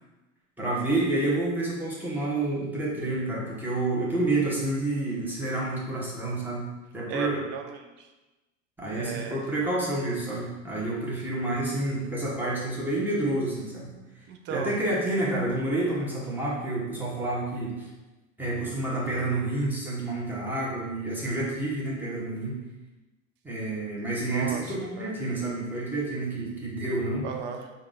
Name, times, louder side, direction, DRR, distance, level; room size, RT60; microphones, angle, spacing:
voice 1, 0.6-7.4 8.8-13.9 14.5-17.9 18.4-22.6 23.4-27.3, right 2 dB, 5° right, -6 dB, 1.2 m, -29 dB
voice 2, 7.1-8.1 8.9-9.4 11.0-11.1 14.3-14.8 24.3-25.1 27.2-27.7, right 6 dB, 30° right, 5 dB, 0.4 m, -36 dB
3.5 x 2.6 x 3.8 m, 1.1 s
figure-of-eight pair, 85°, 39 cm